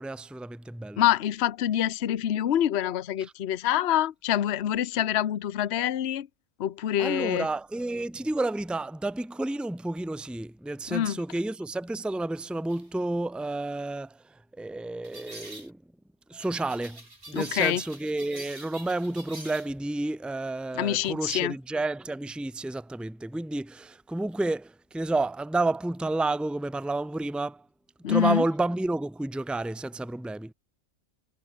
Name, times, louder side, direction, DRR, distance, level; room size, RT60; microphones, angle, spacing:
voice 1, 0.0-1.0 7.0-14.2 14.6-15.8 16.3-27.6 28.1-30.5, right 2 dB, ahead, 1.4 m, -30 dB
voice 2, 1.0-6.3 6.6-7.5 10.9-11.2 17.3-17.8 20.7-21.5 28.0-28.4, left 11 dB, 55° left, 1.0 m, -26 dB
sound 1, 12.7-12.9 15.0-15.7 16.4-19.7, right 2 dB, 80° right, 7.9 m, -45 dB
omnidirectional pair, 1.5 m